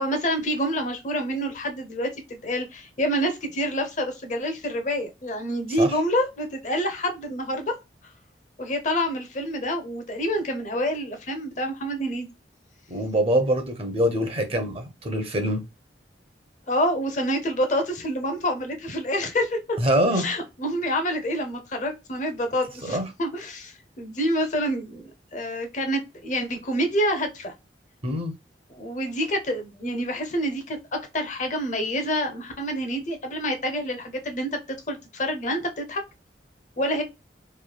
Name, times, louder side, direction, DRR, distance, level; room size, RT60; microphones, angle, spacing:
voice 1, 0.0-7.8 8.6-12.3 16.7-19.8 20.1-27.5 28.7-34.6 34.9-36.0 36.8-37.0, equal, 45° left, 0.6 m, -27 dB
voice 2, 12.9-15.6 19.8-20.3 22.8-23.0 28.0-28.3, equal, 35° right, 0.6 m, -24 dB
3.0 x 2.2 x 2.2 m
head